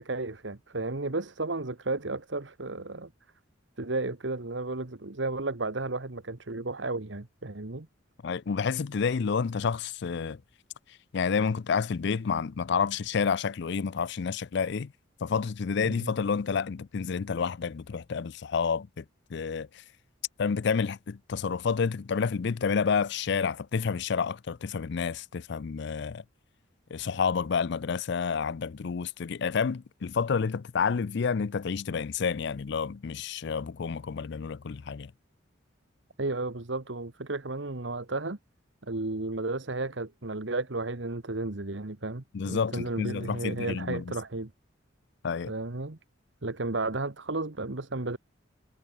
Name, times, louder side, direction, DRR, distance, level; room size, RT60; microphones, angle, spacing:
voice 1, 0.0-3.1 3.8-7.9 15.8-16.1 36.2-38.4 38.8-44.5 45.5-46.0 46.4-48.2, right 2 dB, 65° right, 1.4 m, -33 dB
voice 2, 8.2-10.4 11.1-14.9 15.2-19.0 19.3-19.8 20.4-26.2 26.9-35.1 42.3-44.1 45.2-45.5, left 5 dB, 60° left, 0.5 m, -29 dB
head